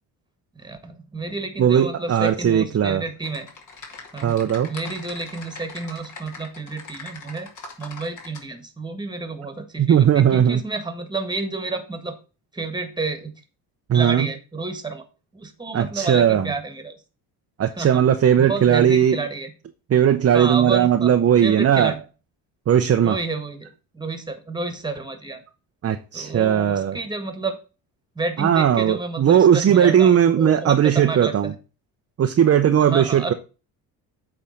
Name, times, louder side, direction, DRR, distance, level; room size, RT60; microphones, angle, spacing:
voice 1, 0.5-3.5 4.1-4.3 4.7-7.5 7.8-12.2 12.5-13.3 13.9-15.0 15.3-16.9 17.8-18.0 18.4-19.5 20.3-21.1 21.4-22.0 23.0-25.4 26.1-27.6 28.1-31.5 32.8-33.3, right 3 dB, 10° right, 1.7 m, -30 dB
voice 2, 1.6-3.0 4.2-4.7 9.8-10.6 13.9-14.3 15.7-16.5 17.6-19.2 19.9-22.0 22.7-23.2 25.8-27.0 28.4-31.5 32.2-33.3, right 9 dB, 35° right, 0.7 m, -18 dB
Typing, 3.2-8.4, left 4 dB, 40° left, 2.3 m, -41 dB
8.2 x 3.5 x 6.5 m
supercardioid pair, 85°, 45 cm